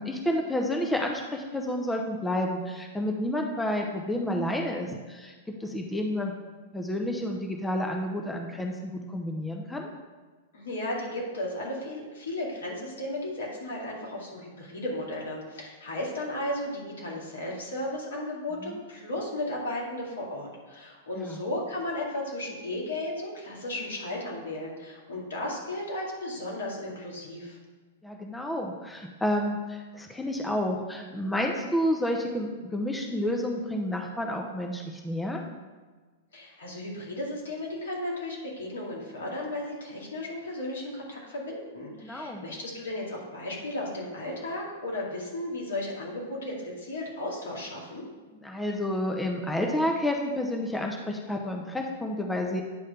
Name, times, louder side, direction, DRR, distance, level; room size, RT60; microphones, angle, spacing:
voice 1, 0.0-5.3 5.6-6.3 6.7-9.9 18.6-18.8 21.1-21.4 28.0-35.4 42.0-42.4 48.4-52.6, left 1 dB, 5° left, 1 dB, 0.8 m, -30 dB
voice 2, 10.5-27.6 36.3-48.0, left 1 dB, 75° left, -3 dB, 2.3 m, -35 dB
9.3 x 3.2 x 5.7 m, 1.4 s
hypercardioid pair, 110°, 0 cm